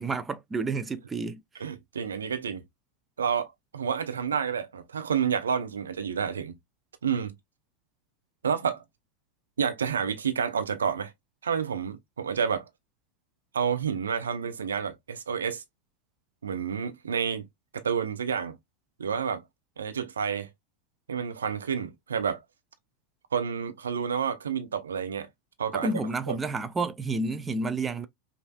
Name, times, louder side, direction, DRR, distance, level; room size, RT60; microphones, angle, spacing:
voice 1, 0.0-1.4 25.7-28.1, right 3 dB, 15° right, 0.5 m, -30 dB
voice 2, 1.6-2.6 3.2-6.5 7.0-7.3 8.4-8.8 9.6-11.1 11.4-12.6 13.5-15.6 16.4-17.5 17.7-18.6 19.0-19.4 19.8-20.5 21.1-22.4 23.3-25.3 25.6-25.9 26.3-26.4, right 7 dB, 70° right, 0.8 m, -29 dB
5.5 x 2.7 x 2.3 m
figure-of-eight pair, 90°, 0 cm